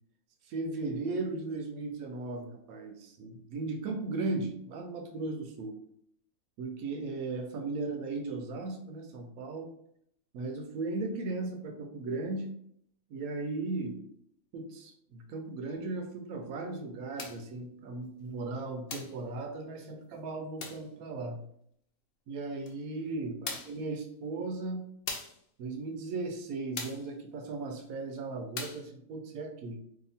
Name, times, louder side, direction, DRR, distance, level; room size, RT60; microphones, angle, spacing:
voice 1, 0.4-5.7 6.6-9.7 10.3-12.5 13.1-14.0 14.5-21.4 22.3-24.9 25.6-29.8, right 3 dB, 80° right, 4 dB, 1.1 m, -37 dB
sound 1, 17.2-17.5 18.9-19.2 20.6-20.9 22.7-22.8 23.5-23.8 25.1-25.4 26.8-27.1 28.6-28.9, left 4 dB, 60° left, 0.7 m, -39 dB
2.8 x 2.5 x 4.0 m, 0.69 s
omnidirectional pair, 1.5 m